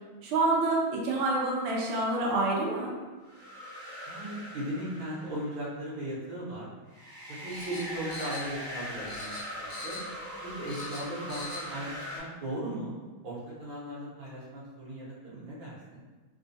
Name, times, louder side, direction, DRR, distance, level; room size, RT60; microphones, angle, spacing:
voice 1, 0.2-2.9, right 2 dB, 85° right, -2 dB, 1.5 m, -27 dB
sound 1, 3.2-5.8 6.9-12.2, equal, 45° right, 0.8 m, -41 dB
voice 2, 4.1-6.7 7.3-9.3 9.6-10.0 10.4-12.9 13.2-16.0, right 1 dB, 65° right, -7 dB, 1.7 m, -37 dB
sound 2, 7.5-8.8 9.1-10.2 10.5-11.7 12.0-12.1, left 2 dB, 85° left, 0.5 m, -43 dB
4.2 x 2.2 x 2.6 m, 1.3 s
omnidirectional pair, 2.3 m